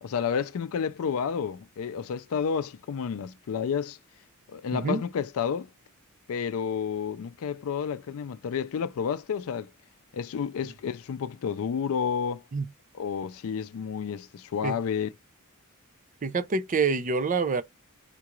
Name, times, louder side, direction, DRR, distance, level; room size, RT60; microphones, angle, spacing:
voice 1, 0.0-4.0 4.5-5.7 6.3-9.7 10.1-12.4 12.9-15.1, left 7 dB, 70° left, 0.4 m, -30 dB
voice 2, 16.2-17.6, right 4 dB, 35° right, 0.4 m, -26 dB
3.7 x 2.4 x 3.0 m
head